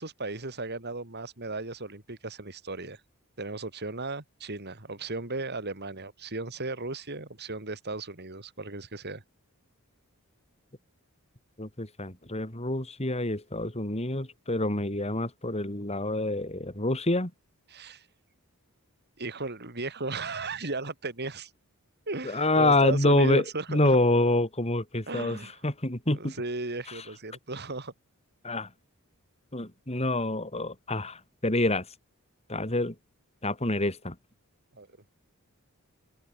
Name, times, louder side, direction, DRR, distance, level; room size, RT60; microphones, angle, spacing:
voice 1, 0.0-3.0 3.4-9.2 17.7-18.1 19.2-21.5 22.1-24.0 25.1-25.6 26.1-27.9 34.7-34.9, right 3 dB, 50° right, 4.0 m, -35 dB
voice 2, 11.6-17.3 22.2-26.3 28.4-28.7 29.5-31.8 32.5-32.9 33.4-34.1, left 2 dB, 30° left, 4.7 m, -27 dB
open air
head